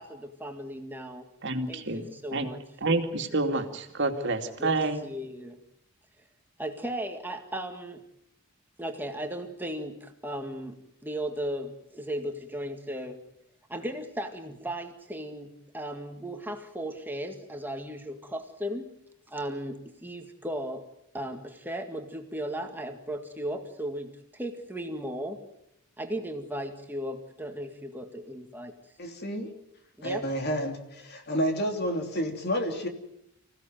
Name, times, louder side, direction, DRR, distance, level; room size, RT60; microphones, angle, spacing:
voice 1, 0.0-1.3 1.7-2.6 4.6-4.8 5.0-5.6 6.6-8.0 8.8-13.2 13.7-18.9 19.3-20.9 21.1-25.4 26.0-28.7 30.0-30.2, right 1 dB, 10° right, 4 dB, 1.9 m, -36 dB
voice 2, 1.4-2.0 2.3-2.5 2.8-5.0, right 2 dB, 55° right, 4 dB, 2.5 m, -28 dB
voice 3, 29.0-29.5 30.0-32.9, equal, 45° left, 5 dB, 3.1 m, -30 dB
26.0 x 16.5 x 9.3 m, 0.78 s
head